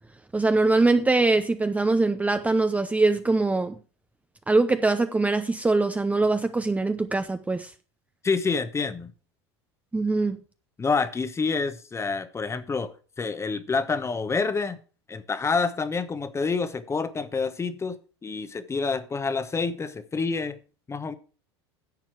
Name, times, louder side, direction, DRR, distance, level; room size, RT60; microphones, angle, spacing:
voice 1, 0.3-3.7 4.5-7.7 9.9-10.4, right 3 dB, 10° right, 0.6 m, -22 dB
voice 2, 8.2-9.1 10.8-12.9 13.2-14.8 15.1-20.6 20.9-21.1, left 4 dB, 20° left, 1.0 m, -27 dB
10.5 x 7.4 x 4.7 m
hypercardioid pair, 85°, 14 cm